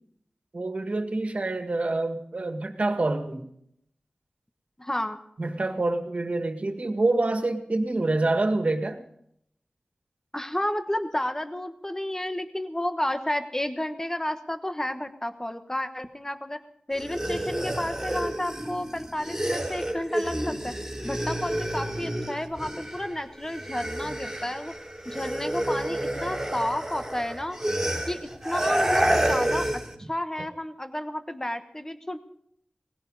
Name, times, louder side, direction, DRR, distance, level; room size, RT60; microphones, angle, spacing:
voice 1, 0.5-3.5 5.4-9.0, right 2 dB, 60° right, 5 dB, 1.9 m, -26 dB
voice 2, 4.8-5.2 10.3-16.6 16.9-20.7 21.0-24.7 25.0-27.6 28.1-29.7 30.0-32.2, left 1 dB, 20° left, 8 dB, 1.2 m, -31 dB
sound 1, 16.9-23.1 23.4-29.9, right 1 dB, 10° right, 3.3 m, -29 dB
19.5 x 16.0 x 4.0 m, 0.71 s
wide cardioid pair, 55°, 3 cm